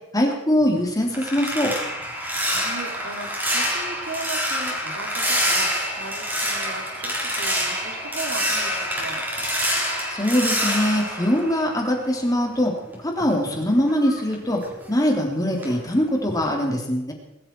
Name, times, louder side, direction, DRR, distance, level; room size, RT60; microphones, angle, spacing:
voice 1, 0.1-1.8 10.1-12.7 13.0-14.6 14.9-17.1, equal, 20° left, 1 dB, 3.2 m, -22 dB
sound 1, 0.6-12.2 12.6-15.2 15.6-15.9 16.3-16.5, equal, 10° right, 4.0 m, -27 dB
voice 2, 2.4-9.2, right 2 dB, 75° right, 3 dB, 3.1 m, -37 dB
21.5 x 12.5 x 4.6 m, 0.86 s
head